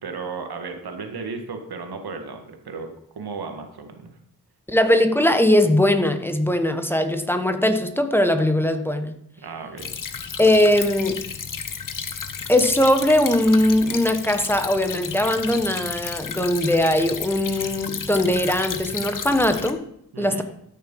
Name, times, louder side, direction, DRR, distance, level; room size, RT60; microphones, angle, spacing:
voice 1, 0.0-4.1 9.4-9.9 20.1-20.4, right 4 dB, 80° right, 5 dB, 1.8 m, -34 dB
voice 2, 4.7-9.2 10.4-11.3 12.5-19.8 20.2-20.4, left 1 dB, 5° left, 8 dB, 1.2 m, -20 dB
Stream / Trickle dribble, 9.8-19.7, left 6 dB, 55° left, 1.1 m, -32 dB
13.5 x 6.6 x 5.5 m, 0.72 s
cardioid pair, 60°, 37 cm